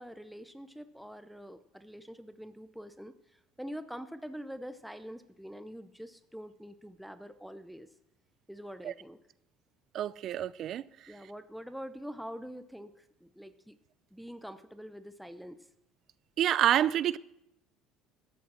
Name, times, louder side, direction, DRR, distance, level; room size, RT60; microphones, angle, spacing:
voice 1, 0.0-7.9 8.5-9.2 11.1-13.7 14.1-15.6, equal, ahead, 0.8 m, -45 dB
voice 2, 9.9-10.8 16.4-17.2, right 11 dB, 55° right, 0.4 m, -27 dB
12.5 x 7.0 x 7.5 m
supercardioid pair, 80°, 0 cm